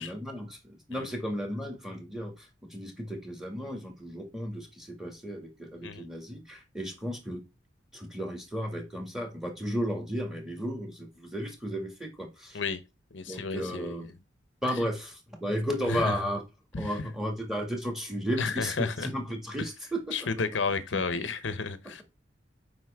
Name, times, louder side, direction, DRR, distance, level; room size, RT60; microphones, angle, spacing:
voice 1, 0.0-7.4 7.9-12.6 13.3-14.1 14.6-16.4 16.8-20.0 20.9-21.0, equal, ahead, 1.9 m, -34 dB
voice 2, 13.1-13.9 14.7-14.8 15.9-16.1 16.7-17.1 18.4-19.1 19.6-19.7 20.1-22.0, left 4 dB, 85° left, 0.8 m, -32 dB
7.7 x 5.3 x 3.5 m
head